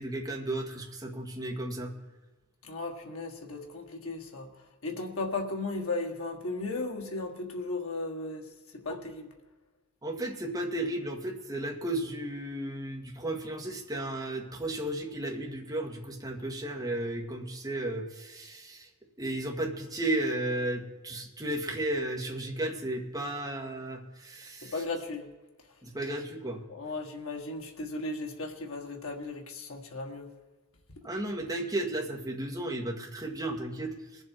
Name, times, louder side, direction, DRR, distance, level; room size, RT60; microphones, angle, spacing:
voice 1, 0.0-1.9 8.9-9.0 10.0-18.8 19.2-24.8 25.8-26.6 31.0-33.9, right 1 dB, 15° right, 0 dB, 1.8 m, -34 dB
voice 2, 2.7-4.5 4.8-8.4 8.8-9.3 24.7-25.2 26.7-30.3, left 3 dB, 65° left, 1 dB, 1.6 m, -35 dB
21.5 x 7.6 x 4.6 m, 1.2 s
head